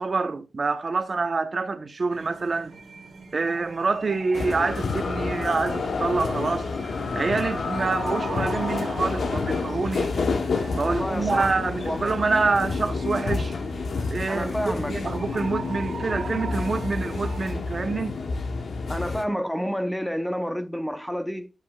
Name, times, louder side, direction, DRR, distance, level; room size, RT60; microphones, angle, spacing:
voice 1, 0.0-2.7 3.3-6.7 7.1-10.2 10.7-13.5 14.1-18.2, right 4 dB, 55° right, 0.8 m, -26 dB
sound 1, 2.1-17.5, right 4 dB, 90° right, 1.6 m, -41 dB
sound 2, 4.3-19.2, left 4 dB, 85° left, 1.0 m, -29 dB
sound 3, 4.7-9.7, left 4 dB, 65° left, 0.7 m, -35 dB
voice 2, 10.8-12.1 14.3-15.4 18.9-21.5, equal, 5° left, 0.7 m, -30 dB
11.5 x 7.4 x 2.3 m
wide cardioid pair, 75°, 0 cm